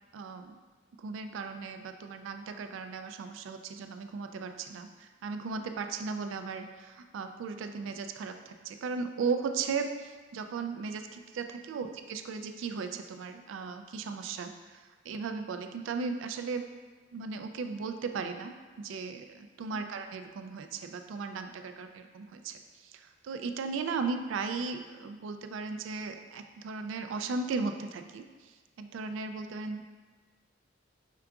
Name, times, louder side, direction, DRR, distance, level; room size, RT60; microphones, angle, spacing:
voice 1, 0.1-0.6 1.0-16.6 17.1-29.8, right 4 dB, 80° right, 7 dB, 0.3 m, -36 dB
4.7 x 3.6 x 2.3 m, 1.4 s
head